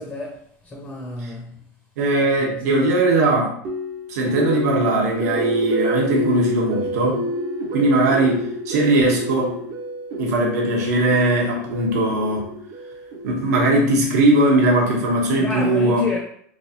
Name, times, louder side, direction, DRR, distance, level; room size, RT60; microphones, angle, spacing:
voice 1, 0.0-1.6 2.5-2.8 15.4-16.2, left 2 dB, 15° left, 0.5 m, -30 dB
voice 2, 2.0-3.5 4.1-7.2 7.7-9.6 10.2-12.5 13.2-16.1, right 1 dB, 90° right, 1.0 m, -19 dB
sound 1, 3.6-13.7, equal, 40° right, 0.5 m, -29 dB
3.2 x 3.2 x 2.8 m
supercardioid pair, 175°, 9 cm